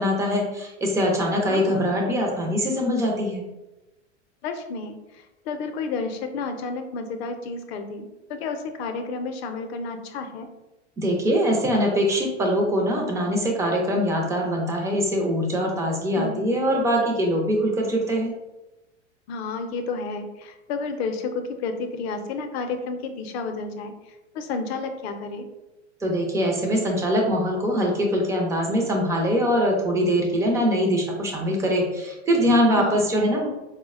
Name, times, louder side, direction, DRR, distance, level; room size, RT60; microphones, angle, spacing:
voice 1, 0.0-3.4 11.0-18.3 26.0-33.5, equal, 10° right, 0 dB, 0.3 m, -23 dB
voice 2, 1.5-2.0 4.4-10.5 16.2-16.4 19.3-23.9 24.3-25.5 32.7-33.0, left 4 dB, 60° left, 6 dB, 0.6 m, -31 dB
3.8 x 2.1 x 2.4 m, 1.0 s
hypercardioid pair, 120°, 36 cm